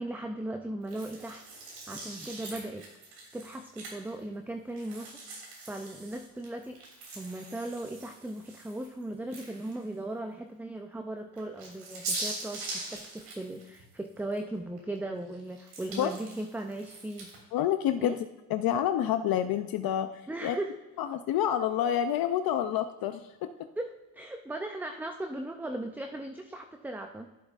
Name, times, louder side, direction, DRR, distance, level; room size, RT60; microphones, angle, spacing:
voice 1, 0.0-2.9 3.3-5.1 5.7-6.8 7.1-17.3 18.0-18.2 20.3-20.8 23.8-23.9 24.1-27.3, right 1 dB, 5° right, 5 dB, 0.4 m, -37 dB
sound 1, 0.9-4.2 4.7-9.9 10.4-10.5 11.3-14.4 14.8-17.4, right 3 dB, 85° right, 3.0 m, -42 dB
voice 2, 17.5-18.2 18.5-20.6 21.0-23.3, left 10 dB, 65° left, 9 dB, 0.5 m, -28 dB
11.5 x 7.3 x 2.4 m, 1.1 s
cardioid pair, 110°, 38 cm